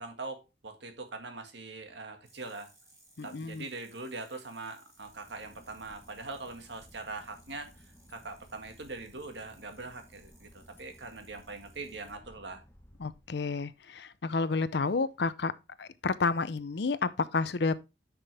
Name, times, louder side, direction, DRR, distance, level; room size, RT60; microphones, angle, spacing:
voice 1, 0.0-2.7 3.2-7.7 8.1-12.6, right 3 dB, 70° right, 1.9 m, -42 dB
sound 1, 2.2-12.1, right 1 dB, 15° right, 4.4 m, -63 dB
voice 2, 3.2-3.6 13.0-15.5 15.8-17.8, left 4 dB, 60° left, 0.6 m, -30 dB
Boat Water vehicle / Engine, 4.9-13.9, equal, 15° left, 1.2 m, -58 dB
10.0 x 6.1 x 3.4 m
head